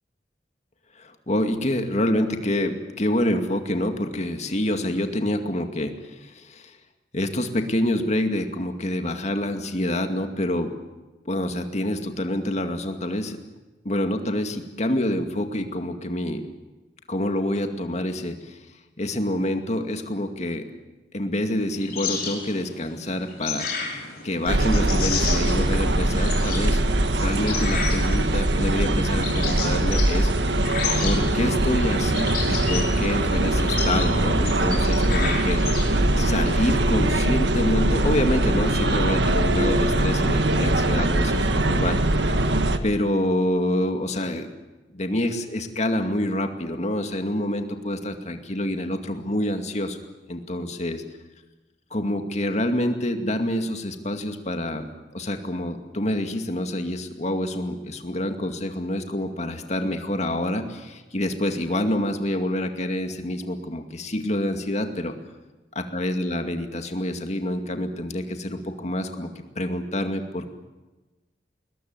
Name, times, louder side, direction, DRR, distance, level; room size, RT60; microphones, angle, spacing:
voice 1, 1.0-6.8 7.1-10.7 11.3-13.4 13.8-16.4 17.1-18.6 19.0-20.7 21.1-23.7 24.2-26.8 27.2-30.5 31.0-42.3 42.8-44.5 44.9-50.0 50.3-51.0 51.9-54.9 55.1-65.1 65.8-69.3 69.6-70.5, left 1 dB, 40° left, 6 dB, 2.3 m, -27 dB
sound 1, 21.6-36.3, left 6 dB, 55° left, 5.3 m, -33 dB
sound 2, 24.5-42.8, right 1 dB, 75° right, 1.5 m, -22 dB
21.5 x 21.0 x 9.6 m, 1.1 s
head